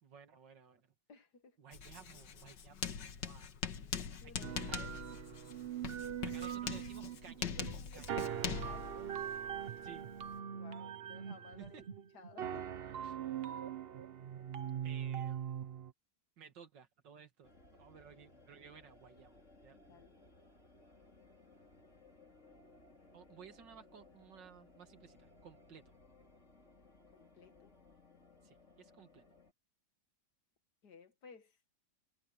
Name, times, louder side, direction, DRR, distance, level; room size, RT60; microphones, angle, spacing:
voice 1, 0.0-0.9 1.6-3.5 4.2-4.8 6.3-8.2 9.8-10.1 11.6-11.8 13.0-13.2 13.4-13.6 14.8-15.7 16.4-17.5 17.8-20.0 23.1-25.9 28.4-29.2, right 7 dB, 85° right, 2.5 m, -57 dB
voice 2, 1.1-1.6 3.6-4.9 8.6-9.1 10.5-11.8 12.1-12.8 19.8-20.3 27.1-27.8 30.8-31.6, left 5 dB, 65° left, 2.3 m, -58 dB
Writing, 1.7-10.4, left 7 dB, 80° left, 2.1 m, -43 dB
sound 1, 4.4-15.9, right 9 dB, 55° right, 0.7 m, -42 dB
sound 2, 17.4-29.5, left 2 dB, 40° left, 4.9 m, -62 dB
omnidirectional pair, 1.9 m